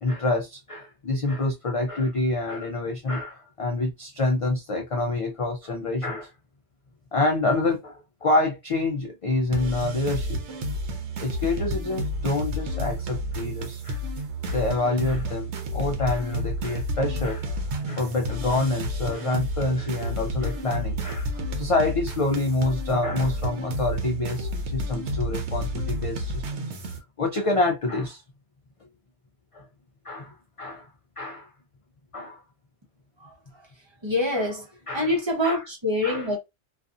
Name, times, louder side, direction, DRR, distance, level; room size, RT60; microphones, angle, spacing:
voice 1, 0.0-6.3 7.1-10.4 11.2-14.0 14.5-17.5 17.9-26.6 27.2-28.2 29.5-29.7 30.0-30.9 31.2-31.5 32.1-32.4 34.3-34.5 34.9-35.1 35.4-35.6 36.0-36.3, left 2 dB, 55° left, 0.3 m, -27 dB
sound 1, 9.5-27.0, equal, 90° right, 1.0 m, -30 dB
voice 2, 33.2-33.6 34.0-36.4, left 1 dB, 30° right, 0.7 m, -26 dB
2.6 x 2.4 x 2.3 m
omnidirectional pair, 1.1 m